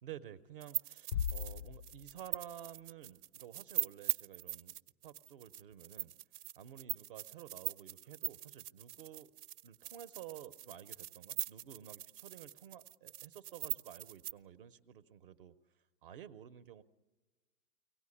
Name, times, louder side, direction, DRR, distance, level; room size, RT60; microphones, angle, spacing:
voice 1, 0.0-4.7 5.0-6.1 6.6-9.3 9.6-15.5 16.0-16.8, right 10 dB, 35° right, 11 dB, 0.7 m, -52 dB
sound 1, 0.6-14.3, right 13 dB, 75° right, 0.7 m, -41 dB
sound 2, 1.1-2.6, left 9 dB, 85° left, 0.7 m, -39 dB
24.0 x 18.0 x 9.7 m, 1.3 s
supercardioid pair, 170°, 46 cm